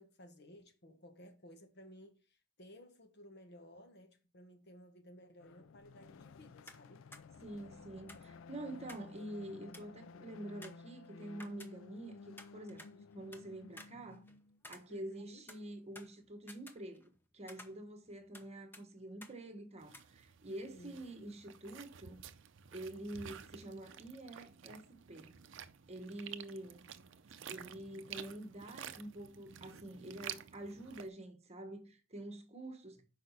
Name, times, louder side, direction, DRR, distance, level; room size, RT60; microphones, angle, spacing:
voice 1, 0.0-7.1 14.9-15.4 20.5-21.0, equal, 60° left, 1.3 m, -57 dB
sound 1, 5.4-14.6, left 4 dB, 75° left, 0.4 m, -55 dB
sound 2, 6.7-6.9 7.1-7.2 8.1-9.1 9.4-9.5 9.7-10.0 10.6-12.0 12.4-13.4 13.8-15.2 15.5-17.2 17.5-18.5 18.7-18.8 19.2-19.4 19.9-20.0, left 1 dB, 10° left, 0.9 m, -55 dB
voice 2, 7.4-14.2 14.7-22.2 22.7-25.3 25.9-26.8 27.5-33.0, right 1 dB, 35° right, 1.2 m, -47 dB
sound 3, 19.8-31.1, right 9 dB, 65° right, 0.5 m, -51 dB
6.4 x 4.9 x 4.1 m
head